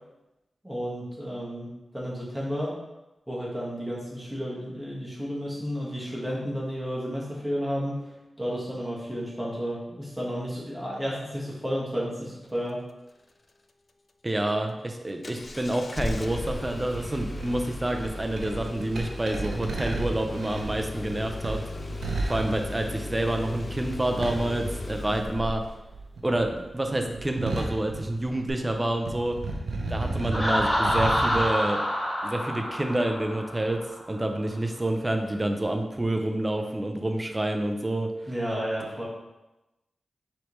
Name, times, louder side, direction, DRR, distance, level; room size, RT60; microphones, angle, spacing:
voice 1, 0.6-2.7 3.3-8.0 8.4-12.8 38.3-39.1, equal, 5° right, -6 dB, 1.5 m, -32 dB
voice 2, 14.2-21.6 22.3-25.6 26.2-29.4 29.9-31.8 32.2-38.1, right 1 dB, 20° right, 4 dB, 0.5 m, -28 dB
Engine starting, 15.2-25.8 28.5-28.6, left 2 dB, 45° left, 0.3 m, -36 dB
sound 1, 16.3-25.6 25.8-28.7 29.0-31.4, right 2 dB, 85° right, 0.6 m, -34 dB
Laughter, 30.3-34.0, equal, 15° left, 1.0 m, -27 dB
4.6 x 3.2 x 3.0 m, 1.0 s
cardioid pair, 65°, 0 cm